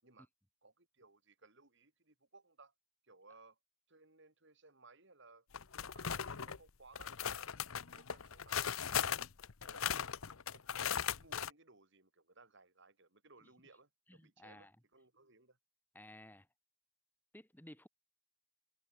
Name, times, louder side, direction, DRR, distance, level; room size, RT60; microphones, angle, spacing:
voice 1, 0.6-2.7 3.0-3.6 3.9-5.5 5.8-9.2 9.6-10.1 10.5-15.6, right 3 dB, 60° right, 4.9 m, -63 dB
sound 1, 5.5-6.6 7.0-11.5, left 8 dB, 80° left, 0.9 m, -38 dB
voice 2, 14.1-14.7 15.9-16.5 17.3-17.9, left 1 dB, 10° left, 5.1 m, -56 dB
head